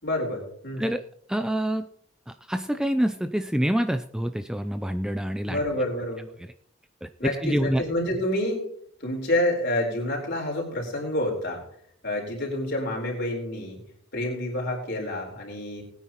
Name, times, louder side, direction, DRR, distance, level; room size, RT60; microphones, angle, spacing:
voice 1, 0.0-0.8 5.4-6.3 7.2-8.7 9.0-11.6 12.0-13.8 14.1-15.8, left 1 dB, 50° left, 0 dB, 4.3 m, -28 dB
voice 2, 1.3-1.9 2.3-5.6 6.4-6.5 7.0-7.8, equal, 5° right, 8 dB, 0.3 m, -27 dB
20.5 x 9.3 x 3.0 m, 0.66 s
head